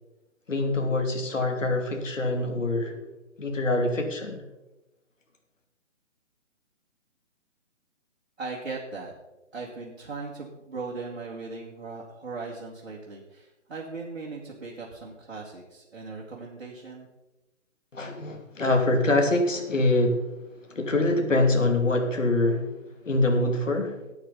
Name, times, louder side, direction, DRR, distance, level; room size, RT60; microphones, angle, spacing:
voice 1, 0.5-3.0 3.4-4.4 17.9-20.3 20.7-22.8 23.0-24.1, left 2 dB, 75° left, 3 dB, 2.7 m, -24 dB
voice 2, 8.4-9.1 9.5-17.1, right 3 dB, 55° right, -4 dB, 2.3 m, -38 dB
14.5 x 9.0 x 4.0 m, 1.0 s
figure-of-eight pair, 145°, 38 cm